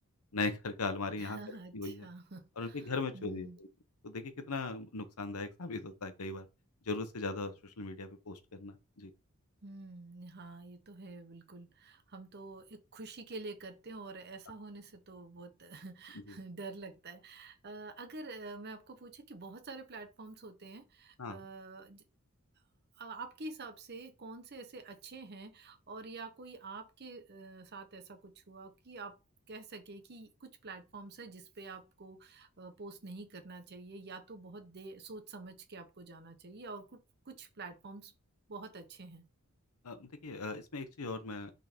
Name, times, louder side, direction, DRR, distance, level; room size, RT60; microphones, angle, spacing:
voice 1, 0.3-1.4 1.7-2.1 2.6-3.7 4.0-6.4 6.9-9.1 21.2-21.4 39.8-41.5, left 3 dB, 85° left, 1.0 m, -38 dB
voice 2, 1.1-3.6 9.6-22.0 23.0-29.2 29.5-38.1 38.5-39.3, right 3 dB, 50° right, 0.9 m, -47 dB
5.5 x 3.8 x 4.4 m
head